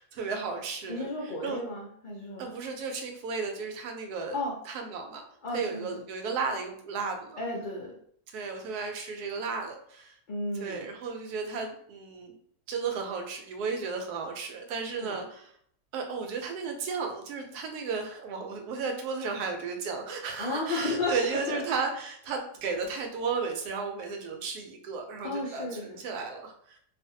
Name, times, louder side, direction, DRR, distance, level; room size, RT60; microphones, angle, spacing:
voice 1, 0.0-1.6 2.4-4.4 4.7-5.2 5.5-7.4 8.3-10.2 10.6-12.4 12.7-15.5 15.9-26.8, right 5 dB, 85° right, 4 dB, 1.1 m, -34 dB
voice 2, 0.9-2.5 4.3-4.5 5.4-5.9 7.4-7.9 10.3-10.8 14.9-15.2 20.4-21.1 21.5-21.6 25.2-26.0, left 2 dB, 90° left, -5 dB, 0.4 m, -33 dB
2.6 x 2.4 x 2.6 m, 0.65 s
omnidirectional pair, 1.6 m